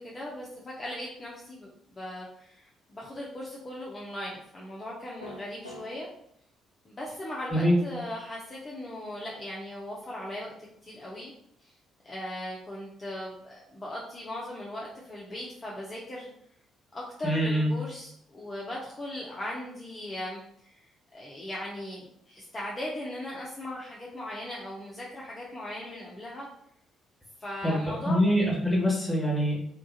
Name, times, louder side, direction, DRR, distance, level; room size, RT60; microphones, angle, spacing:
voice 1, 0.0-6.1 6.8-10.5 10.8-11.3 11.6-11.8 12.0-16.3 16.9-26.5 27.4-28.2, left 1 dB, 30° left, -5 dB, 0.6 m, -38 dB
sound 1, 5.2-5.9, left 1 dB, 90° left, 0.4 m, -42 dB
voice 2, 7.5-7.8 17.2-17.7 27.6-29.6, equal, 5° left, -3 dB, 1.4 m, -24 dB
2.9 x 2.4 x 2.7 m, 0.71 s
figure-of-eight pair, 45°, 0 cm